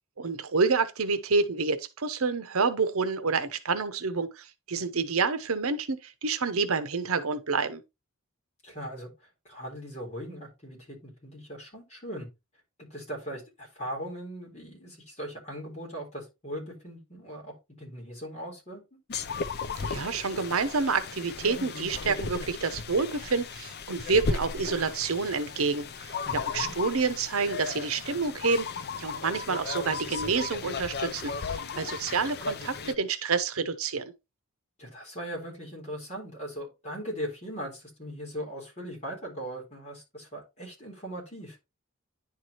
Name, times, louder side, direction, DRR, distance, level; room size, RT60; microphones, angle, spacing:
voice 1, 0.2-7.8 19.8-28.7 29.0-34.1, right 4 dB, 70° right, 0.8 m, -28 dB
voice 2, 8.6-12.3 12.8-18.8 26.3-26.7 34.8-41.6, equal, 30° left, 4.0 m, -39 dB
sound 1, 19.1-33.0, left 4 dB, 50° left, 0.5 m, -35 dB
10.0 x 4.7 x 3.0 m
head